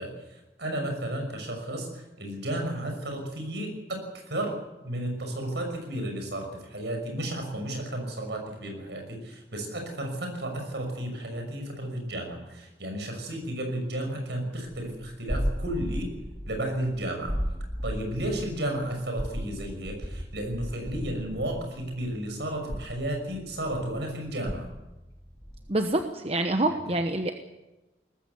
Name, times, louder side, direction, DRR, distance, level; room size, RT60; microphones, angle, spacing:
voice 1, 0.0-4.5 4.8-16.1 16.5-17.4 17.8-24.7, right 1 dB, 65° right, 4 dB, 6.0 m, -33 dB
sound 1, 14.9-22.3 22.5-25.7, equal, 15° right, 2.2 m, -36 dB
voice 2, 25.7-27.3, right 2 dB, 30° right, 6 dB, 1.0 m, -26 dB
19.5 x 15.0 x 9.6 m, 1.0 s
head